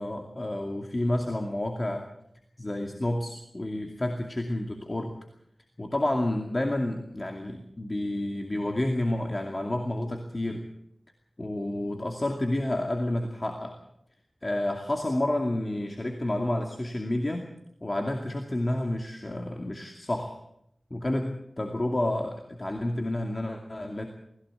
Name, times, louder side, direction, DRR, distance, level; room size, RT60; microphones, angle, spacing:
voice 1, 0.0-2.1 2.6-5.2 5.8-10.7 11.4-13.8 14.4-17.5 17.8-20.4 20.9-24.1, left 1 dB, 35° left, 3 dB, 2.4 m, -30 dB
20.5 x 16.5 x 8.1 m, 0.77 s
wide cardioid pair, 70°, 0 cm